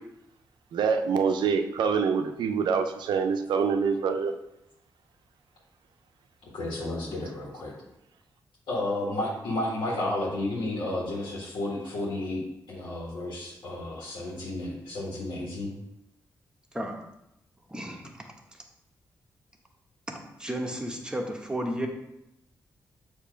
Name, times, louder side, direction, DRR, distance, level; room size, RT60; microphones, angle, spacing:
voice 1, 0.7-4.3, right 6 dB, 85° right, 7 dB, 0.5 m, -25 dB
voice 2, 6.4-7.7 8.7-12.4 12.7-15.7, left 1 dB, 90° left, -5 dB, 1.4 m, -32 dB
voice 3, 17.7-18.2 20.1-21.9, right 1 dB, 10° right, 1 dB, 1.0 m, -33 dB
6.7 x 2.8 x 5.1 m, 0.85 s
cardioid pair, 90°, 8 cm